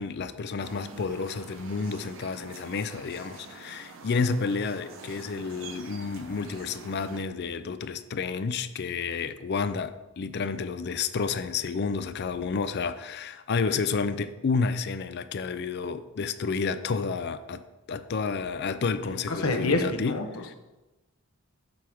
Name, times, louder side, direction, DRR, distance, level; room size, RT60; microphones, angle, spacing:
voice 1, 0.0-17.6 17.9-20.5, left 5 dB, 50° left, 0.4 m, -30 dB
sound 1, 0.6-7.2, right 4 dB, 65° right, 0.8 m, -46 dB
voice 2, 19.1-20.5, left 2 dB, 85° left, 0.9 m, -28 dB
7.6 x 3.5 x 6.2 m
head